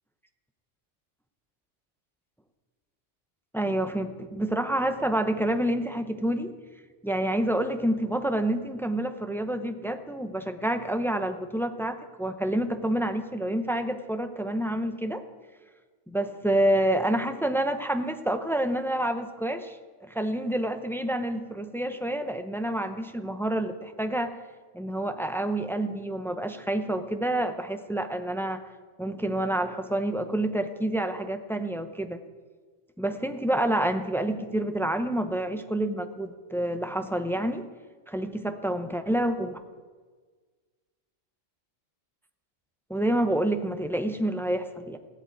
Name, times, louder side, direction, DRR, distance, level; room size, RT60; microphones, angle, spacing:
voice 1, 3.5-6.6 7.0-15.2 16.1-24.4 24.7-28.6 29.0-32.2 33.0-37.7 38.1-39.6 42.9-45.0, right 1 dB, ahead, 8 dB, 0.6 m, -28 dB
16.5 x 8.2 x 9.1 m, 1.5 s
omnidirectional pair, 1.3 m